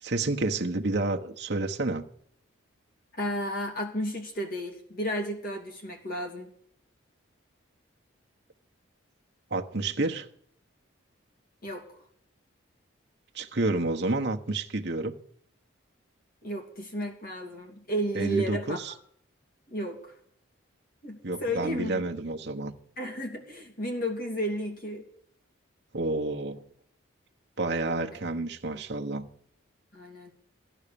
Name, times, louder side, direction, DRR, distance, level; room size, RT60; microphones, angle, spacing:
voice 1, 0.0-2.1 9.5-10.3 13.3-15.1 18.1-18.9 21.2-22.8 25.9-26.6 27.6-29.3, right 2 dB, 55° right, 1.1 m, -29 dB
voice 2, 3.1-6.5 11.6-11.8 16.4-18.8 19.7-20.1 21.0-22.0 23.0-25.0 29.9-30.3, equal, 45° left, 2.8 m, -33 dB
14.5 x 11.0 x 6.9 m
head